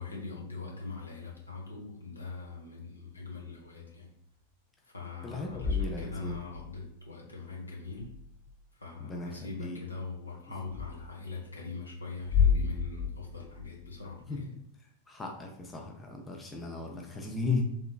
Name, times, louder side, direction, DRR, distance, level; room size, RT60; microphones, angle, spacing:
voice 1, 0.0-4.1 4.8-8.1 8.8-14.5, left 4 dB, 80° left, -3 dB, 1.0 m, -42 dB
voice 2, 5.2-6.4 9.0-9.8 14.3-14.5 15.1-17.6, left 3 dB, 15° left, 1 dB, 0.5 m, -36 dB
sound 1, 5.3-6.7 7.9-8.6 10.7-10.9 12.2-14.1, left 6 dB, 65° left, 1.4 m, -31 dB
3.3 x 2.8 x 2.3 m, 0.74 s
figure-of-eight pair, 90°, 0 cm